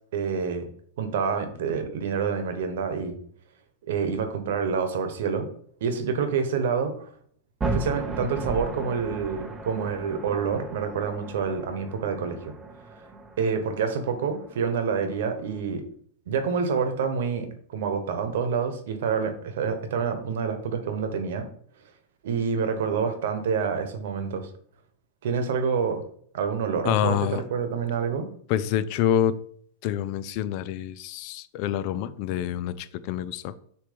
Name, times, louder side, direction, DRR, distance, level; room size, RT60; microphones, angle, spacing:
voice 1, 0.1-0.7 1.0-3.2 3.9-5.5 5.8-7.1 7.7-12.4 13.4-15.8 16.3-21.5 22.2-24.5 25.2-26.0 26.3-28.3, right 6 dB, 75° right, 8 dB, 1.1 m, -27 dB
sound 1, 7.6-15.6, right 2 dB, 10° right, 0.6 m, -36 dB
voice 2, 26.8-27.4 28.5-29.3 29.8-33.5, left 10 dB, 45° left, 15 dB, 0.4 m, -27 dB
6.6 x 3.1 x 5.1 m, 0.62 s
supercardioid pair, 155°, 0 cm